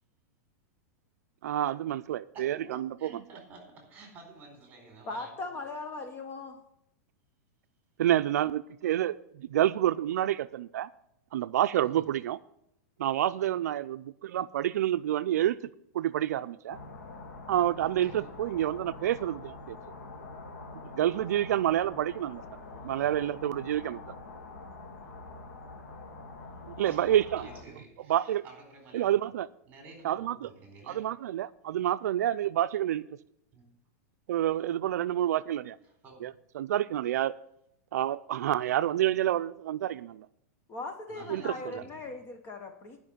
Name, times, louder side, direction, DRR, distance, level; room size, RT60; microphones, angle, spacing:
voice 1, 1.4-3.1 8.0-10.9 11.3-12.4 13.0-15.6 15.9-16.8 17.5-19.8 20.8-24.1 26.8-27.5 28.1-28.4 28.9-29.5 30.0-30.5 30.9-33.1 34.3-35.8 36.2-37.4 37.9-40.3 41.3-41.8, right 12 dB, 80° right, 0.4 m, -28 dB
voice 2, 2.3-5.5 11.7-12.1 13.5-13.6 17.8-18.3 23.0-23.2 26.8-27.1 27.4-29.2 29.7-31.0 33.5-33.7 36.0-36.2 41.1-42.2, right 3 dB, 20° right, 4.1 m, -51 dB
voice 3, 5.1-6.6 40.7-43.0, left 3 dB, 25° left, 1.0 m, -39 dB
sound 1, 16.7-27.6, left 3 dB, 90° left, 2.5 m, -45 dB
11.0 x 5.8 x 8.9 m
supercardioid pair, 150°, 9 cm